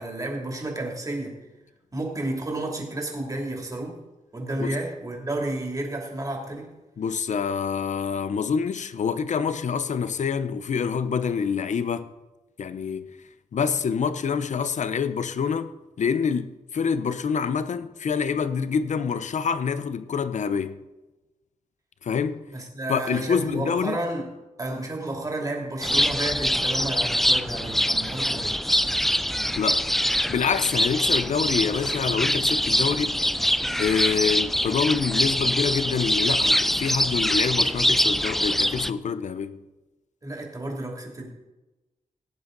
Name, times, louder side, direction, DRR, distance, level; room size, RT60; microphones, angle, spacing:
voice 1, 0.0-1.4 1.9-4.0 4.3-6.7 22.5-24.3 24.6-28.6 40.2-41.3, right 1 dB, 25° right, 2.8 m, -31 dB
voice 2, 7.0-12.1 12.6-13.2 13.5-15.7 16.0-20.8 22.0-22.4 22.9-24.0 29.6-29.8 30.3-33.2 33.8-39.6, left 6 dB, 60° left, 0.8 m, -26 dB
sound 1, 25.8-38.9, equal, ahead, 0.3 m, -24 dB
17.5 x 10.0 x 3.9 m
wide cardioid pair, 125°, 14 cm